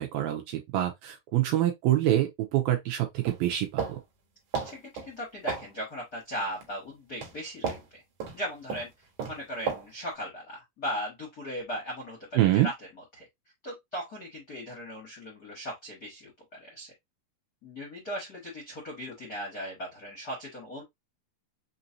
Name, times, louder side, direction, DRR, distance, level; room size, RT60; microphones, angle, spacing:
voice 1, 0.0-4.0 12.4-12.7, right 13 dB, 80° right, 2.3 m, -26 dB
sound 1, 3.3-4.0 4.5-5.1 5.5-5.7 6.5-6.7 7.2-7.3 7.6-7.9 8.2-8.4 8.7-8.9 9.2-9.4 9.7-9.9, right 6 dB, 60° right, 2.2 m, -33 dB
voice 2, 4.6-8.0 8.3-8.9 9.3-12.3 12.5-12.7 13.2-13.3 13.6-16.3 16.6-16.9 17.6-20.8, equal, 85° left, 0.8 m, -38 dB
6.1 x 2.6 x 2.6 m
omnidirectional pair, 4.7 m